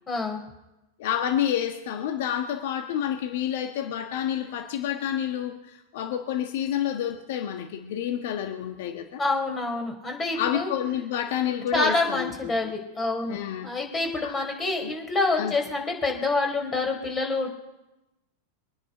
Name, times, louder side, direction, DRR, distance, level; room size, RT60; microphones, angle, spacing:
voice 1, 0.1-0.4 9.2-10.7 11.7-17.5, left 3 dB, 20° left, 3 dB, 4.0 m, -27 dB
voice 2, 1.0-9.2 10.4-12.7 13.3-13.7 14.2-14.3 14.8-14.9 15.4-15.5, left 10 dB, 60° left, 6 dB, 1.4 m, -29 dB
24.0 x 9.8 x 5.0 m, 0.99 s
figure-of-eight pair, 95°, 0 cm